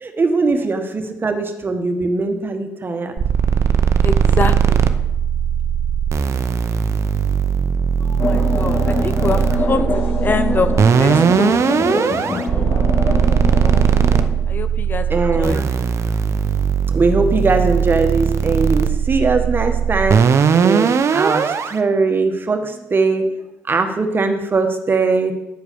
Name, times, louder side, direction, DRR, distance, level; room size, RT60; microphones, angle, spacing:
voice 1, 0.0-3.2 15.1-15.7 16.9-20.2 20.6-23.3 23.7-25.3, right 3 dB, 40° right, 6 dB, 1.3 m, -20 dB
sound 1, 3.2-21.7, right 7 dB, 55° right, 0.7 m, -18 dB
voice 2, 4.0-4.8 8.0-10.7 11.0-11.9 12.5-12.8 14.5-15.8, left 4 dB, 35° left, 10 dB, 0.7 m, -25 dB
sound 2, 8.2-14.3, left 2 dB, 55° left, 2.2 m, -24 dB
10.5 x 4.8 x 6.9 m, 0.93 s
supercardioid pair, 65°, 6 cm